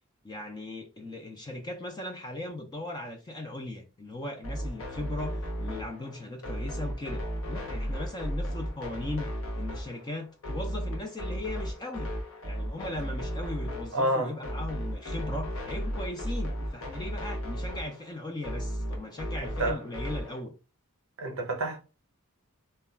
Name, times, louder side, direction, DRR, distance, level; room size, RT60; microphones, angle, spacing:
voice 1, 0.2-12.1 12.4-20.5, left 2 dB, 20° left, 0.4 m, -38 dB
sound 1, 4.4-20.4, equal, 65° left, 0.7 m, -35 dB
voice 2, 13.9-14.3 19.4-19.8 21.2-21.8, right 1 dB, 70° right, 0.7 m, -29 dB
2.3 x 2.1 x 3.3 m
head